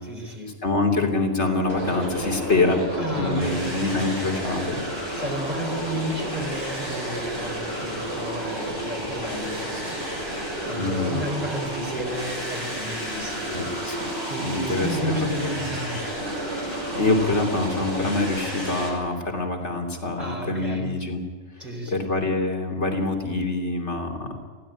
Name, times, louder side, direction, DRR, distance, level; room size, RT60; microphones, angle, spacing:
voice 1, 0.0-0.6 3.0-4.1 5.2-10.1 10.6-13.5 14.2-16.1 20.2-20.9 21.6-22.1, equal, 35° right, 0 dB, 4.1 m, -32 dB
voice 2, 0.6-2.8 3.2-4.8 8.7-8.8 10.7-11.2 13.5-14.0 14.4-15.0 15.4-15.7 16.6-21.2 21.6-24.4, left 3 dB, 65° left, 1 dB, 3.3 m, -25 dB
sound 1, 1.7-18.9, right 1 dB, 55° right, 7.1 m, -31 dB
21.5 x 16.0 x 9.0 m, 1.5 s
omnidirectional pair, 1.3 m